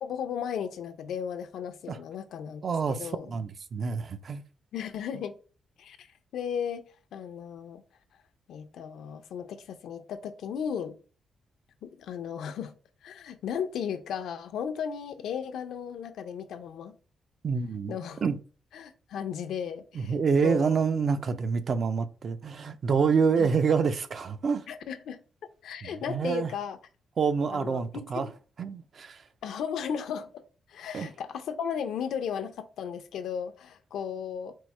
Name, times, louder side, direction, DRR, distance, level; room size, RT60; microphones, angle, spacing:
voice 1, 0.0-2.6 2.9-3.3 4.7-5.3 5.8-6.1 6.3-6.8 7.1-7.8 8.5-10.9 11.8-12.7 13.0-16.9 17.9-18.2 18.7-20.1 20.4-20.8 23.4-23.5 24.7-25.2 25.6-26.8 27.5-28.3 29.4-30.4 30.7-34.5, left 7 dB, 85° left, 0.5 m, -35 dB
voice 2, 2.6-4.4 17.4-18.4 19.9-24.6 25.8-26.5 27.2-28.3 28.6-29.2 30.9-31.1, right 5 dB, 45° right, 0.4 m, -27 dB
4.6 x 2.1 x 4.1 m
cardioid pair, 125°, 0 cm